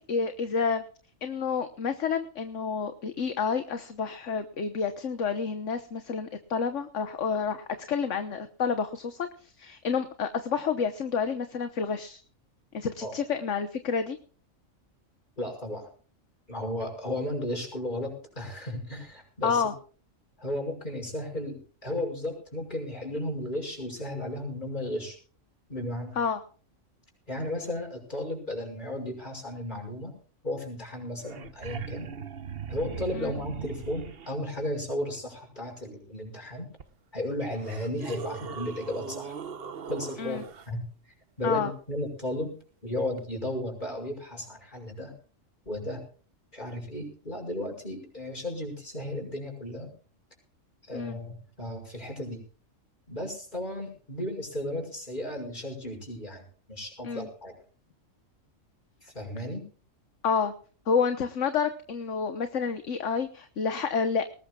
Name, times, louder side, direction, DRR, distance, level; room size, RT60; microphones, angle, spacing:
voice 1, 0.1-0.8 1.2-12.2 12.7-14.2 19.4-19.7 26.2-26.4 33.1-33.3 40.2-40.4 41.4-41.7 50.9-51.2 57.0-57.3 60.2-60.5 60.9-64.3, left 6 dB, 65° left, 9 dB, 1.4 m, -29 dB
voice 2, 15.4-15.9 16.5-19.6 20.4-25.2 25.7-26.2 27.3-30.1 30.4-32.1 32.7-36.7 37.1-39.4 39.9-40.8 41.4-42.5 42.8-45.1 45.7-46.0 46.5-49.9 50.8-52.4 53.1-57.5 59.0-59.6, left 1 dB, 35° left, 3 dB, 6.0 m, -34 dB
sound 1, 30.9-31.0 31.2-34.3 36.8-36.9 37.6-40.7 43.2-43.3, right 6 dB, 50° right, 1.1 m, -39 dB
20.0 x 18.5 x 2.4 m, 0.40 s
omnidirectional pair, 1.4 m